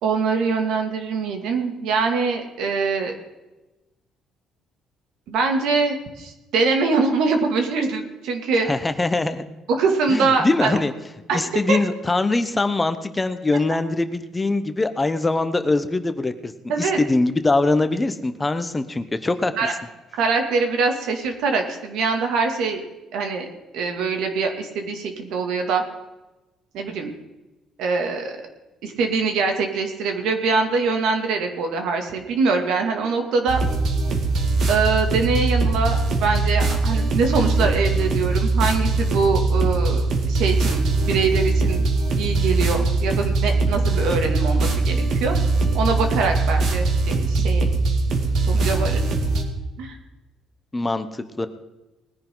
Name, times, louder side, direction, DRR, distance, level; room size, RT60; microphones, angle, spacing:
voice 1, 0.0-3.1 5.3-8.7 9.7-10.8 11.3-11.8 16.7-17.0 19.6-19.7 20.1-22.8 23.1-23.5 23.7-25.8 26.7-27.1 27.8-28.4 28.8-33.6 34.7-41.9 42.2-45.4 45.7-47.6 48.5-49.1 49.8-50.0, right 4 dB, 75° right, 4 dB, 2.4 m, -23 dB
voice 2, 8.5-9.4 10.1-10.9 11.3-16.5 16.8-19.5 50.7-51.5, left 2 dB, 15° left, 10 dB, 0.8 m, -22 dB
sound 1, 33.5-49.4, right 3 dB, 60° right, 2.2 m, -21 dB
20.0 x 10.5 x 3.9 m, 1.0 s
cardioid pair, 135°, 0 cm